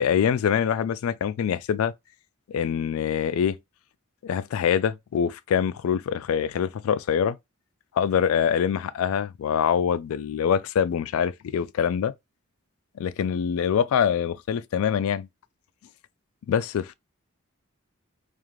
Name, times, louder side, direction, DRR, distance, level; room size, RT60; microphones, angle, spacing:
voice 1, 0.0-1.9 2.5-3.6 4.2-7.4 7.9-12.1 13.0-15.3 16.5-16.9, left 8 dB, 75° left, 0.3 m, -24 dB
2.5 x 2.4 x 3.0 m
head